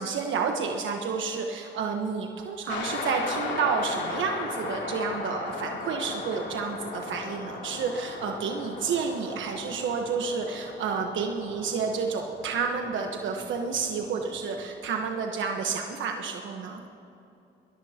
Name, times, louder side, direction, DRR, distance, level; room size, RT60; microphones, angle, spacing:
voice 1, 0.0-16.8, right 5 dB, 75° right, 2 dB, 1.2 m, -30 dB
sound 1, 2.7-14.7, left 3 dB, 65° left, 3.0 m, -37 dB
23.5 x 20.5 x 2.9 m, 2.8 s
cardioid pair, 90°, 20 cm